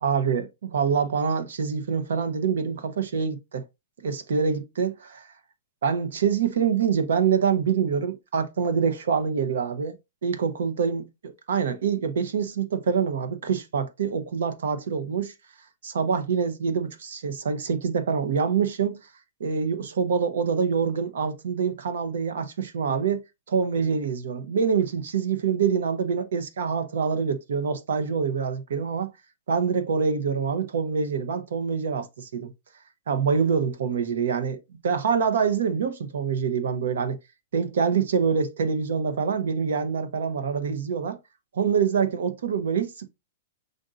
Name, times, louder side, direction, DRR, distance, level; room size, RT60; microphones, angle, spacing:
voice 1, 0.0-3.6 4.0-5.3 5.8-10.0 10.2-15.3 15.8-19.0 19.4-23.2 23.5-29.1 29.5-32.5 33.1-37.2 37.5-41.2 41.5-43.0, right 6 dB, 80° right, 0.9 m, -25 dB
5.1 x 2.7 x 3.8 m
supercardioid pair, 180°, 0 cm